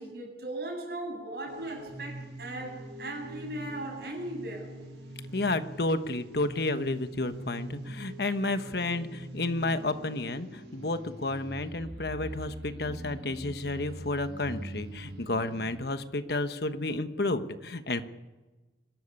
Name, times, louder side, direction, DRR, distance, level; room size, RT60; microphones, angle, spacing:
voice 1, 0.0-4.7, right 1 dB, 60° right, 0 dB, 7.5 m, -38 dB
sound 1, 1.5-15.7, right 1 dB, 75° right, 6.9 m, -43 dB
voice 2, 5.3-18.0, left 2 dB, 60° left, 10 dB, 1.2 m, -31 dB
24.0 x 13.0 x 9.8 m, 1.2 s
head